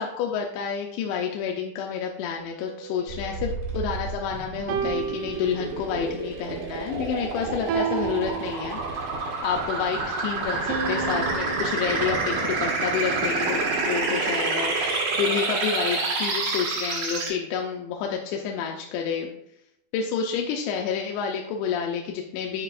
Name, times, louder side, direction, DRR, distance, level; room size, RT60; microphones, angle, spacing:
voice 1, 0.0-8.8 9.4-19.3 19.9-22.6, left 7 dB, 85° left, 1 dB, 2.8 m, -29 dB
sound 1, 2.4-4.1 4.7-6.1 7.7-9.1 10.7-12.2, right 7 dB, 80° right, 2.5 m, -33 dB
sound 2, 3.1-17.3, right 3 dB, 60° right, 2.1 m, -28 dB
8.8 x 5.6 x 2.5 m, 0.77 s
omnidirectional pair, 5.4 m